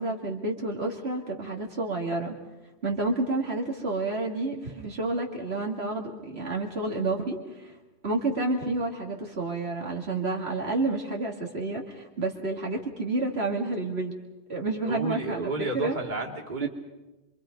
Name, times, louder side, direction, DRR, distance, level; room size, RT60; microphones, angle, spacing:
voice 1, 0.0-2.3 2.8-7.7 8.0-14.1 14.5-16.0 16.6-16.7, right 2 dB, 70° right, 0 dB, 2.6 m, -30 dB
voice 2, 14.8-16.7, right 2 dB, 45° right, 0 dB, 2.7 m, -32 dB
27.0 x 24.5 x 5.2 m, 1.1 s
omnidirectional pair, 1.1 m